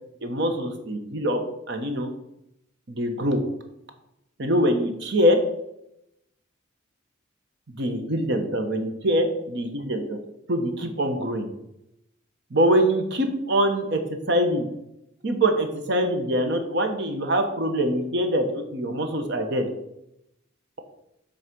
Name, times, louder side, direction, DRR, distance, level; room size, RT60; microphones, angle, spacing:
voice 1, 0.2-1.4 1.7-2.1 2.9-3.4 4.4-5.4 7.7-10.2 10.5-11.5 12.5-14.0 14.3-14.7 15.2-19.7, equal, 60° right, 6 dB, 1.1 m, -24 dB
6.5 x 4.1 x 6.0 m, 0.83 s
head